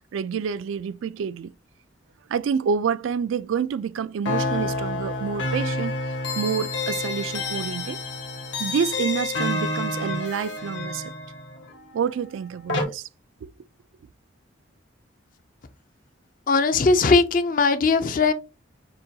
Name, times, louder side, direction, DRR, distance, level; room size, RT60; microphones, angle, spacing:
voice 1, 0.1-1.5 2.3-5.9 6.4-8.0 8.6-11.1 11.9-13.1 13.4-13.5, right 7 dB, 80° right, 0.3 m, -28 dB
sound 1, 4.3-12.8, left 2 dB, 65° left, 1.3 m, -29 dB
voice 2, 16.5-18.3, left 4 dB, 45° left, 0.5 m, -19 dB
6.5 x 2.2 x 2.7 m
head